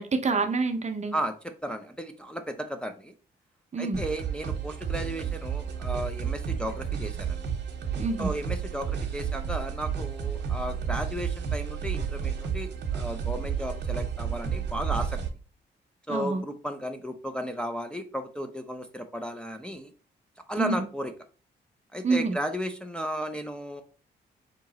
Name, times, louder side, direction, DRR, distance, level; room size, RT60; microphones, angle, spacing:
voice 1, 0.0-1.2 3.7-4.0 8.0-8.3 16.1-16.4 20.6-20.8 22.0-22.4, right 3 dB, 40° right, 0.6 m, -27 dB
voice 2, 1.6-3.1 3.8-7.4 8.2-15.2 16.1-19.9 20.5-21.1 21.9-23.8, equal, 5° left, 0.5 m, -34 dB
sound 1, 3.9-15.3, right 7 dB, 70° right, 0.9 m, -31 dB
3.7 x 2.8 x 4.0 m
cardioid pair, 85°, 18 cm